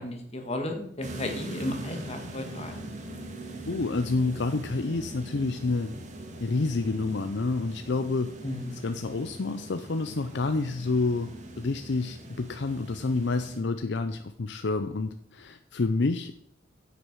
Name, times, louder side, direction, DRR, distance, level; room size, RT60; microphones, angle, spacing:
voice 1, 0.0-2.8 8.4-8.8, left 1 dB, 35° left, 4 dB, 1.8 m, -34 dB
sound 1, 1.0-13.6, right 2 dB, 40° right, 1.8 m, -41 dB
voice 2, 3.7-5.9 6.4-8.3 8.8-11.3 11.6-16.3, left 3 dB, 65° left, 9 dB, 0.6 m, -28 dB
10.0 x 8.2 x 4.7 m, 0.69 s
head